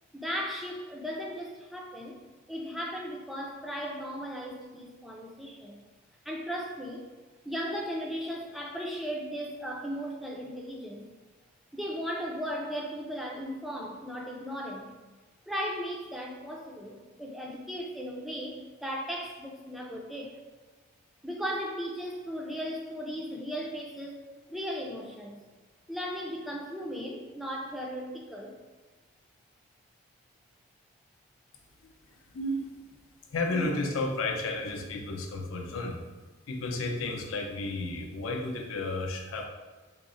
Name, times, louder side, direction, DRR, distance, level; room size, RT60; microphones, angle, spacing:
voice 1, 0.1-2.2 2.5-5.8 6.2-7.1 7.4-11.1 11.7-14.9 15.5-20.3 21.2-24.2 24.5-25.4 25.9-28.5, equal, ahead, -1 dB, 0.3 m, -36 dB
voice 2, 32.3-32.7 33.3-36.0 36.5-39.5, left 2 dB, 75° left, 2 dB, 0.5 m, -32 dB
3.8 x 2.0 x 3.7 m, 1.3 s
head